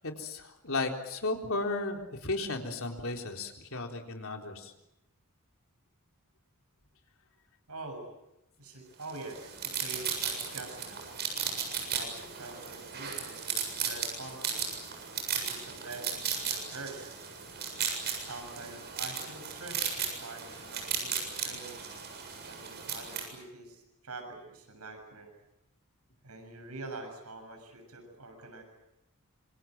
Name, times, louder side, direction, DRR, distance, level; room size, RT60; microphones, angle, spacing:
voice 1, 0.2-4.7, left 2 dB, 65° left, 3 dB, 3.8 m, -34 dB
voice 2, 7.7-8.1 8.6-11.0 11.8-14.6 15.3-17.1 18.1-21.8 22.5-25.3 26.2-28.6, right 2 dB, 90° right, 5 dB, 7.1 m, -45 dB
sound 1, 9.1-23.3, right 7 dB, 50° right, 7.5 m, -36 dB
26.5 x 25.5 x 7.7 m, 0.87 s
head